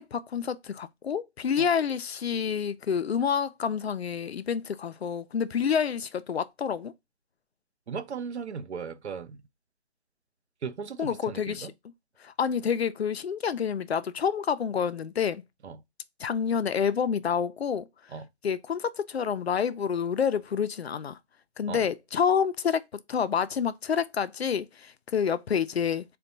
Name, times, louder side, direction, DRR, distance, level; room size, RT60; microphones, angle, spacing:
voice 1, 0.0-6.9 11.0-11.7 12.2-15.4 16.2-17.9 18.4-21.2 21.6-22.8 23.1-26.0, left 7 dB, 65° left, 0.5 m, -28 dB
voice 2, 7.9-9.4 10.6-11.7 15.6-15.8 18.1-18.3 21.7-21.8, right 6 dB, 75° right, 0.6 m, -37 dB
4.2 x 2.3 x 3.9 m
hypercardioid pair, 170°, 34 cm